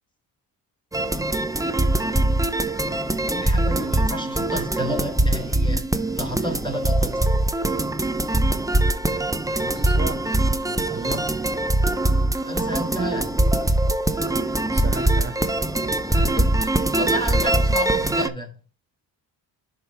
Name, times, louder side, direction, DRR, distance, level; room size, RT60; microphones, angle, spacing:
sound 1, 0.9-18.3, right 1 dB, 10° right, 0.7 m, -22 dB
voice 1, 3.3-5.8 6.1-7.3 10.9-11.2 12.4-13.3 16.1-16.6 17.0-18.5, equal, 10° left, 3.3 m, -31 dB
voice 2, 9.6-10.2 10.7-11.3 14.7-15.6 16.0-16.2, right 4 dB, 25° right, 1.2 m, -34 dB
11.0 x 4.6 x 3.5 m
cardioid pair, 80°, 45 cm